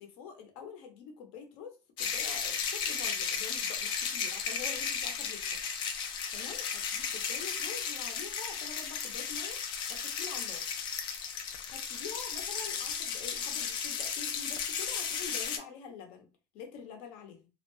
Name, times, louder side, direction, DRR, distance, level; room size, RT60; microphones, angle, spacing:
voice 1, 0.0-5.6 6.3-6.7 6.9-9.6 9.9-10.6 11.7-16.3 16.5-17.5, left 6 dB, 70° left, 0.8 m, -46 dB
sound 1, 2.0-15.6, left 6 dB, 45° left, 0.5 m, -34 dB
2.4 x 2.2 x 3.0 m
cardioid pair, 140°, 11 cm